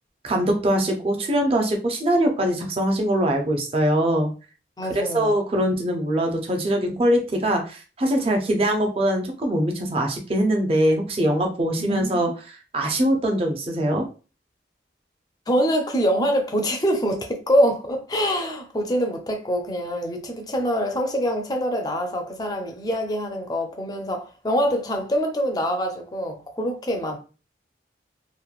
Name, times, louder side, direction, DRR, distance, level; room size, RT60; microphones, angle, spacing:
voice 1, 0.2-4.3 4.9-12.3 12.7-14.0, right 1 dB, 30° right, 0.5 m, -22 dB
voice 2, 4.8-5.3 11.8-12.2 15.5-27.2, equal, 20° left, 0.4 m, -24 dB
3.0 x 2.1 x 2.4 m
head